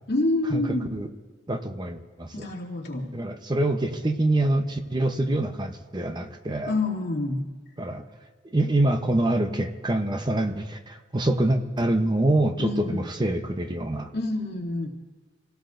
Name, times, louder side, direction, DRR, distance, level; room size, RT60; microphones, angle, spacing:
voice 1, 0.1-0.9 2.3-3.1 6.7-7.4 12.6-13.0 14.1-14.9, left 2 dB, 55° left, -3 dB, 2.6 m, -27 dB
voice 2, 1.5-2.5 3.1-6.7 7.8-8.0 8.4-14.1, right 1 dB, 20° right, 6 dB, 0.8 m, -25 dB
27.0 x 17.5 x 2.6 m, 1.4 s
head